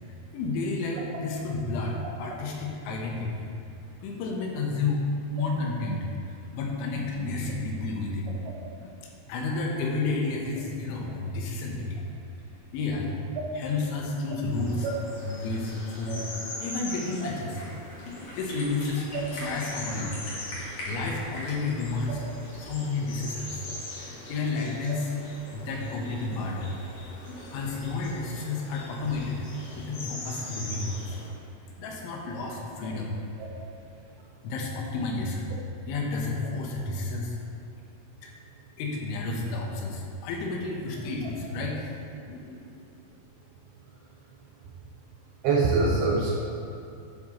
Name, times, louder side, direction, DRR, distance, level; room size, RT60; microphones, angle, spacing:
voice 1, 0.3-3.5 4.0-5.1 5.3-8.5 8.8-8.9 9.3-12.0 12.7-13.1 13.5-14.9 15.2-16.2 16.6-17.6 18.0-20.2 20.6-22.2 22.6-23.6 24.3-25.1 25.5-26.8 27.1-29.5 29.8-31.1 31.8-33.2 34.4-35.5 35.9-37.4 38.2-38.3 38.8-41.9 42.3-42.7, left 3 dB, 90° left, -1 dB, 3.6 m, -31 dB
sound 1, 14.5-31.3, left 1 dB, 70° left, 4.1 m, -42 dB
sound 2, 17.5-23.5, equal, 45° left, 2.6 m, -42 dB
voice 2, 45.4-46.4, right 3 dB, 75° right, -3 dB, 2.4 m, -24 dB
11.5 x 7.6 x 3.2 m, 2.7 s
omnidirectional pair, 5.3 m